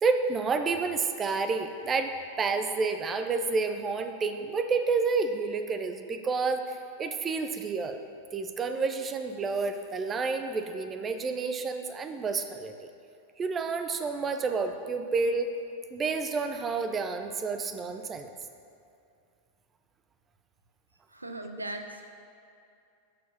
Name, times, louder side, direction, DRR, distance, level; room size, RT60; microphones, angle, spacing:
voice 1, 0.0-2.1 2.4-6.6 7.0-8.0 8.3-12.9 13.4-15.5 15.9-18.3, right 4 dB, 20° right, 7 dB, 0.6 m, -29 dB
voice 2, 21.1-22.0, right 2 dB, 85° right, 5 dB, 0.7 m, -38 dB
11.5 x 4.7 x 5.4 m, 2.5 s
figure-of-eight pair, 90°, 0 cm